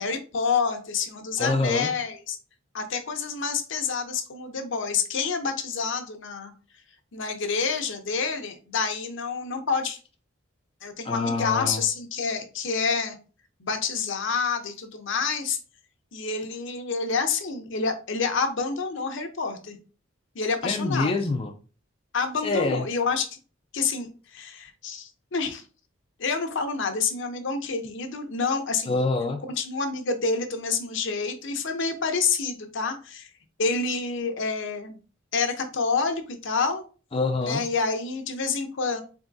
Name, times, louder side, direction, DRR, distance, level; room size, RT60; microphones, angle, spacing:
voice 1, 0.0-2.4 2.7-6.5 7.1-10.0 10.8-13.2 13.6-15.6 16.1-19.8 20.3-21.1 22.1-23.4 23.7-25.6 26.2-29.0 29.6-33.3 33.6-35.0 35.3-36.8 37.4-39.0, left 5 dB, 65° left, 5 dB, 0.8 m, -28 dB
voice 2, 1.4-1.9 11.0-11.8 20.6-21.5 22.4-22.8 28.9-29.4 37.1-37.6, left 3 dB, 30° left, 3 dB, 0.4 m, -25 dB
3.9 x 3.5 x 2.6 m, 0.36 s
head